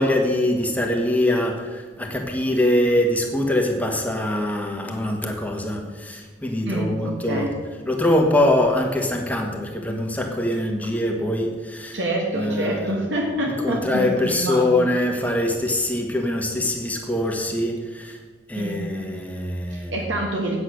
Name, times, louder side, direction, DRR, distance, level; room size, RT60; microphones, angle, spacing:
voice 1, 0.0-7.5 7.8-12.0 12.3-13.0 13.6-18.2 18.5-20.0, left 1 dB, 10° left, 2 dB, 1.4 m, -23 dB
voice 2, 6.7-7.5 11.9-14.9 18.5-18.8 19.7-20.6, right 1 dB, 70° right, -1 dB, 1.5 m, -26 dB
8.7 x 8.4 x 6.3 m, 1.4 s
head